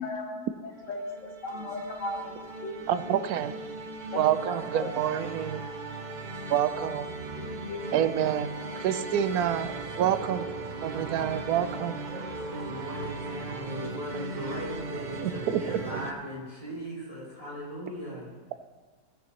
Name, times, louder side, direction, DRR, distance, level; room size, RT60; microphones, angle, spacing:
voice 1, 0.0-2.3 2.6-3.3 4.1-4.9 7.4-8.0, left 2 dB, 50° left, 0 dB, 1.9 m, -37 dB
sound 1, 0.7-16.1, right 3 dB, 50° right, 0.5 m, -38 dB
voice 2, 2.9-3.5 4.2-5.7 6.5-7.1 7.9-8.5 8.8-10.5 10.8-12.0 15.2-15.6, right 10 dB, 70° right, 11 dB, 1.0 m, -27 dB
voice 3, 12.5-18.3, right 1 dB, 20° left, -7 dB, 3.1 m, -38 dB
16.5 x 9.3 x 3.0 m, 1.4 s
omnidirectional pair, 1.8 m